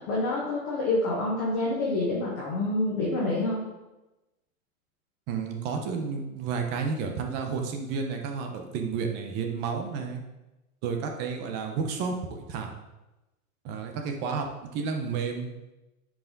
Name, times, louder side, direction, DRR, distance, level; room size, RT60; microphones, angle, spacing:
voice 1, 0.1-3.6, left 2 dB, 15° left, -4 dB, 0.4 m, -27 dB
voice 2, 5.3-10.2 10.8-12.7 13.6-14.5 14.7-15.5, right 5 dB, 25° right, 3 dB, 0.8 m, -31 dB
9.4 x 4.9 x 3.9 m, 1.0 s
supercardioid pair, 155°, 43 cm